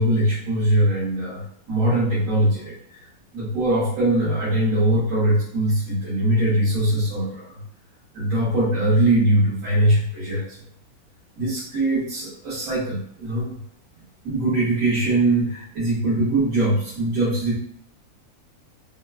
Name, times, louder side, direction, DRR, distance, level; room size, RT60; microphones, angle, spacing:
voice 1, 0.0-3.1 3.3-7.6 8.1-10.5 11.4-13.6 14.2-17.6, right 1 dB, 70° right, -10 dB, 1.2 m, -21 dB
2.9 x 2.2 x 2.2 m, 0.67 s
omnidirectional pair, 1.6 m